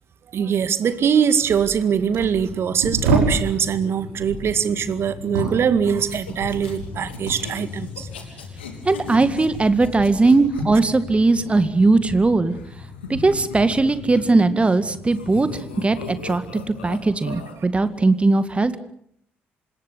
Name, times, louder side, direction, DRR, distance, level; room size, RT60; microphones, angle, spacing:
voice 1, 0.3-8.1, right 7 dB, 45° right, 13 dB, 2.0 m, -22 dB
sound 1, 1.0-1.2 1.5-3.5 4.1-7.5 7.8-11.6 11.9-14.2 14.6-15.4 16.1-16.3, right 3 dB, 70° right, 5.2 m, -30 dB
Train, 1.9-17.0, left 5 dB, 55° left, 4.3 m, -40 dB
sound 2, 6.0-10.6 12.5-14.8 15.0-17.5, left 5 dB, 75° left, 3.3 m, -39 dB
voice 2, 8.9-12.6 13.1-16.4 16.8-18.8, right 3 dB, 20° right, 12 dB, 1.9 m, -19 dB
26.5 x 21.0 x 8.2 m, 0.68 s
figure-of-eight pair, 45°, 6 cm